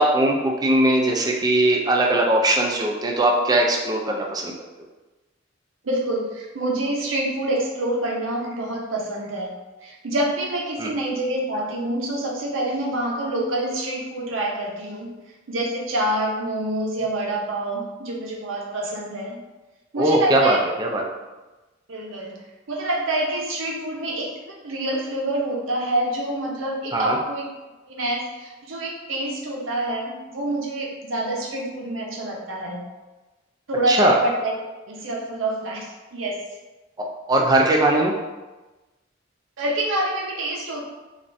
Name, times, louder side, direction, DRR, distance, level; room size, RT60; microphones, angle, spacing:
voice 1, 0.0-4.5 10.8-10.9 20.0-21.0 26.9-27.2 33.9-34.2 37.0-38.1, right 1 dB, 20° right, 0 dB, 0.3 m, -20 dB
voice 2, 5.8-9.5 9.8-15.1 15.5-19.4 19.9-20.6 21.9-22.4 22.7-27.5 27.9-32.8 33.7-34.5 34.9-36.4 39.6-40.8, right 1 dB, 80° right, -1 dB, 0.6 m, -27 dB
3.1 x 2.4 x 2.6 m, 1.1 s
head